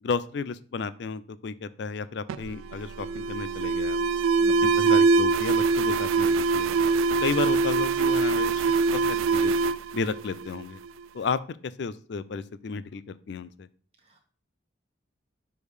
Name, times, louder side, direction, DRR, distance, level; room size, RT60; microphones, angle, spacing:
voice 1, 0.0-4.0 4.6-6.8 7.2-9.5 9.9-10.8 11.1-13.7, left 5 dB, 60° left, 16 dB, 0.4 m, -33 dB
Alarm, 2.3-10.9, right 4 dB, 90° right, 0.3 m, -23 dB
voice 2, 4.4-4.7 14.0-14.2, equal, 30° right, 3 dB, 1.2 m, -46 dB
6.3 x 3.5 x 4.9 m, 0.43 s
head